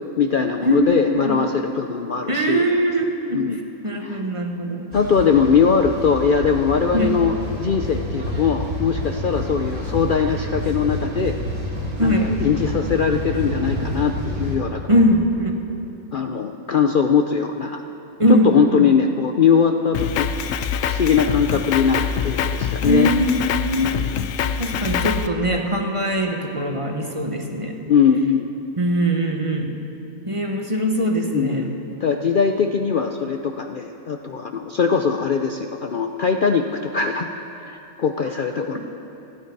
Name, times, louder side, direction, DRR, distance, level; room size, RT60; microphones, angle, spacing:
voice 1, 0.0-2.6 3.3-3.6 4.0-4.2 4.9-7.4 7.6-11.4 12.0-15.0 16.1-17.8 18.3-20.3 20.9-23.1 27.9-28.5 31.3-31.7 32.0-37.3 37.6-38.9, left 6 dB, 50° left, 5 dB, 0.7 m, -21 dB
voice 2, 0.6-1.4 2.3-3.6 3.8-4.9 6.9-7.1 12.0-12.3 14.9-15.6 18.2-18.9 22.8-24.0 24.6-27.8 28.8-29.8 30.3-31.7 38.6-38.7, equal, 25° right, 2 dB, 1.2 m, -21 dB
sound 1, 4.9-14.6, equal, 80° right, 3.4 m, -29 dB
Drum kit, 19.9-25.3, left 7 dB, 85° left, 1.0 m, -24 dB
29.0 x 10.0 x 4.7 m, 3.0 s
omnidirectional pair, 1.4 m